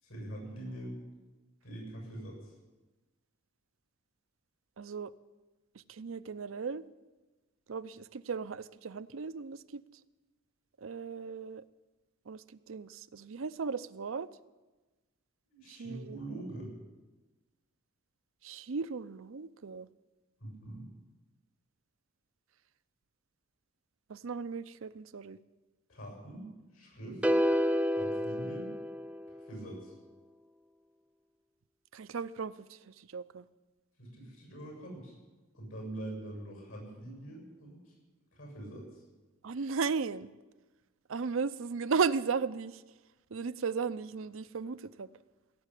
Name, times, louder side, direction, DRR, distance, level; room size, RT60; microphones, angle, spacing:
voice 1, 0.0-1.0 1.6-2.5 15.5-16.7 20.4-20.9 25.9-26.4 26.7-27.2 27.9-28.7 29.5-29.9 34.0-35.2 35.5-38.0 38.3-39.0, right 1 dB, 75° left, 0 dB, 7.1 m, -44 dB
voice 2, 4.8-5.1 5.7-6.8 7.7-9.8 10.8-11.6 12.3-14.3 15.7-16.2 18.4-19.9 24.1-25.4 27.3-27.4 31.9-33.5 39.4-40.3 41.1-42.8 43.3-45.1, right 5 dB, 70° right, 13 dB, 0.5 m, -36 dB
sound 1, 27.2-29.5, equal, 5° right, 0.4 m, -29 dB
17.0 x 7.6 x 9.9 m, 1.2 s
head